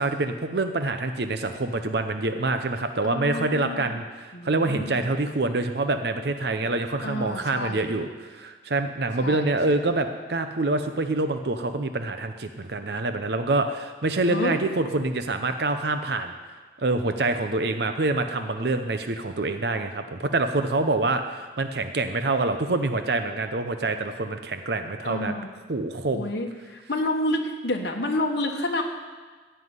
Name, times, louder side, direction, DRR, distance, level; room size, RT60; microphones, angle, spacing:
voice 1, 0.0-16.3 16.8-25.4 25.7-26.3, right 2 dB, 60° right, 7 dB, 0.7 m, -26 dB
voice 2, 3.0-3.9 4.3-5.0 7.0-7.9 9.2-9.8 14.3-14.6 25.0-25.5 26.1-28.8, left 1 dB, 60° left, 1 dB, 1.2 m, -29 dB
15.0 x 5.7 x 9.6 m, 1.4 s
head